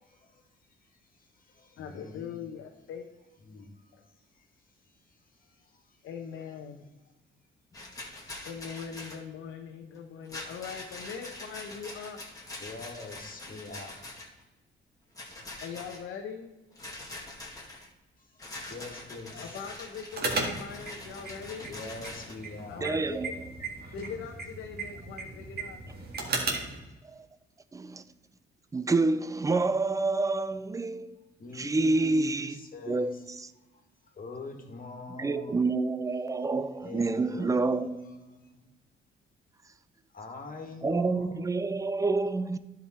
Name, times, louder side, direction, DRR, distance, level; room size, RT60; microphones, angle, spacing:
voice 1, 0.0-0.4 1.5-2.5 3.4-6.1 12.6-14.2 18.2-19.8 21.2-23.0 31.4-33.2 33.6-35.7 36.8-38.7 40.1-41.5, left 3 dB, 45° left, 2.0 m, -45 dB
voice 2, 1.8-3.0 3.5-3.6 3.9-4.0 6.0-6.8 8.4-12.2 15.6-16.5 19.3-21.7 22.7-23.4 23.9-25.8, left 6 dB, 80° left, 0.9 m, -41 dB
Rattle, 7.7-9.2 10.2-14.4 15.1-16.0 16.8-17.9 18.4-22.4, left 2 dB, 15° left, 2.2 m, -44 dB
sound 1, 20.1-26.8, right 3 dB, 50° right, 2.1 m, -36 dB
voice 3, 22.8-23.5 26.4-26.5 27.0-27.3 27.7-28.0 28.7-31.2 31.5-32.6 32.9-33.5 35.1-38.0 39.6-39.7 40.8-42.6, right 3 dB, 15° right, 0.5 m, -28 dB
11.0 x 5.3 x 4.3 m
cardioid pair, 90°, 20 cm